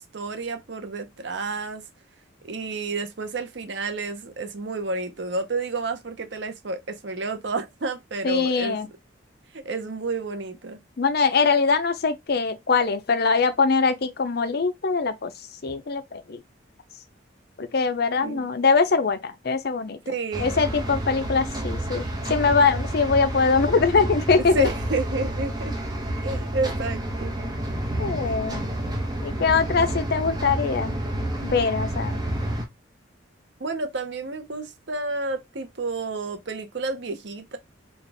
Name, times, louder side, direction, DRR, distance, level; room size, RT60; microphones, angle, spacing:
voice 1, 0.0-1.8 2.4-8.8 9.5-10.8 18.2-18.5 20.1-20.7 24.4-25.8 26.2-27.3 31.5-31.6 33.6-37.6, right 3 dB, 65° right, 0.7 m, -30 dB
voice 2, 8.2-8.9 11.0-15.3 15.6-16.4 17.6-20.0 20.4-24.7 28.0-28.6 29.2-31.0 31.4-32.2, left 4 dB, 55° left, 0.5 m, -22 dB
sound 1, 20.3-32.6, right 1 dB, 20° right, 0.8 m, -29 dB
4.1 x 2.3 x 3.4 m
head